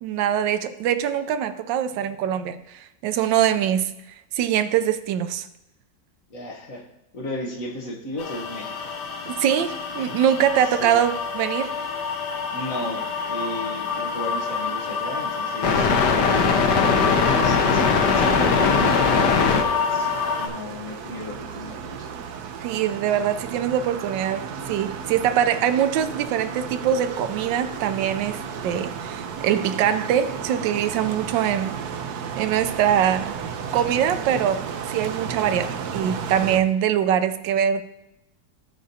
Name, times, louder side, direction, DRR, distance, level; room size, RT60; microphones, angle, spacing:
voice 1, 0.0-3.9 4.3-5.5 9.3-11.7 22.6-31.8 32.4-33.4 33.7-34.6 34.9-37.8, right 9 dB, 85° right, 1.3 m, -23 dB
voice 2, 6.3-6.8 7.1-9.0 10.6-11.0 12.5-15.9 17.3-19.4 19.6-20.1 20.4-22.1, left 1 dB, 50° left, 1.4 m, -34 dB
sound 1, 8.2-20.5, left 5 dB, 70° left, 1.5 m, -23 dB
sound 2, 18.1-36.6, right 7 dB, 65° right, 1.1 m, -34 dB
15.0 x 5.1 x 2.7 m
omnidirectional pair, 2.0 m